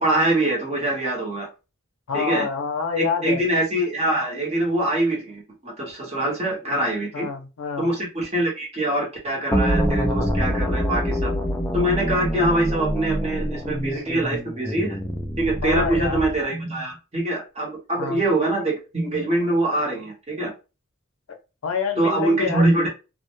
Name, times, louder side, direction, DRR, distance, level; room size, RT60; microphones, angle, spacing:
voice 1, 0.0-1.5 2.1-2.5 3.0-7.3 7.8-11.3 11.7-15.0 15.4-20.5 22.0-22.9, right 1 dB, 30° right, -2 dB, 0.9 m, -24 dB
voice 2, 2.1-3.4 7.1-7.9 15.6-16.2 18.0-18.2 21.6-22.9, left 5 dB, 85° left, 5 dB, 0.5 m, -27 dB
sound 1, 9.5-16.4, equal, 10° left, 0.3 m, -25 dB
2.1 x 2.0 x 2.9 m, 0.30 s
head